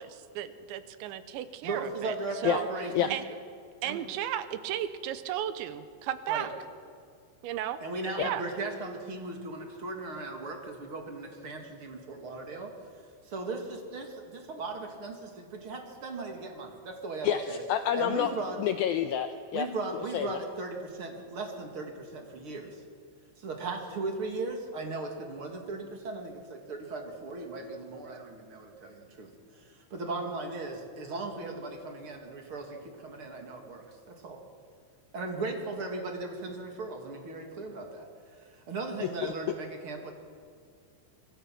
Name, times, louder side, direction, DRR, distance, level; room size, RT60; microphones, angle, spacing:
voice 1, 0.0-2.1 2.4-2.7 3.1-3.2 3.8-6.5 7.4-7.8 8.2-8.4, right 11 dB, 85° right, 11 dB, 3.3 m, -34 dB
voice 2, 1.6-3.2 3.8-4.0 6.3-6.5 7.8-12.7 13.2-17.6 18.0-18.7 19.5-22.8 23.4-34.4 35.1-38.1 38.4-40.1, right 3 dB, 40° right, 2 dB, 2.4 m, -37 dB
voice 3, 17.2-18.3 18.6-19.7 20.1-20.4 39.2-39.3, left 10 dB, 90° left, 8 dB, 2.1 m, -28 dB
25.5 x 22.5 x 6.0 m, 2.2 s
omnidirectional pair, 5.1 m